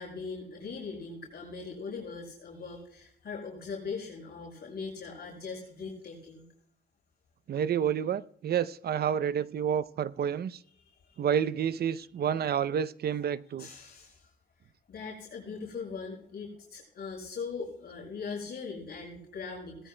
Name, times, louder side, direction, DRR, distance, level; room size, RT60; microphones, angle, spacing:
voice 1, 0.0-6.4 10.8-11.2 13.6-14.3 14.6-19.9, left 5 dB, 55° left, 5.3 m, -40 dB
voice 2, 7.5-10.6 11.2-13.7, right 8 dB, 55° right, 0.6 m, -29 dB
19.0 x 13.5 x 2.2 m
cardioid pair, 90°, 20 cm